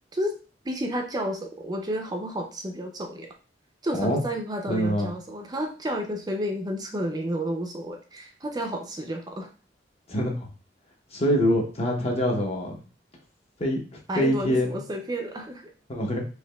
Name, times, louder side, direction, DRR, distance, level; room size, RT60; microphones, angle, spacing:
voice 1, 0.6-3.3 3.8-9.5 14.1-15.7, equal, 20° right, 3 dB, 0.4 m, -31 dB
voice 2, 4.7-5.1 10.1-10.5 11.1-12.8 13.6-13.8 14.2-14.8 15.9-16.3, equal, 35° left, 1 dB, 0.8 m, -25 dB
4.6 x 2.9 x 2.2 m, 0.36 s
head